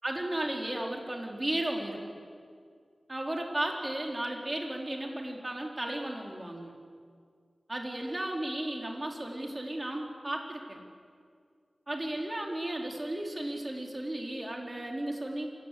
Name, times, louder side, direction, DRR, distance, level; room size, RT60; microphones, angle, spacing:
voice 1, 0.0-2.1 3.1-6.7 7.7-10.8 11.9-15.5, right 1 dB, 30° right, 1 dB, 4.3 m, -34 dB
26.5 x 18.0 x 8.6 m, 2.1 s
wide cardioid pair, 55°, 0 cm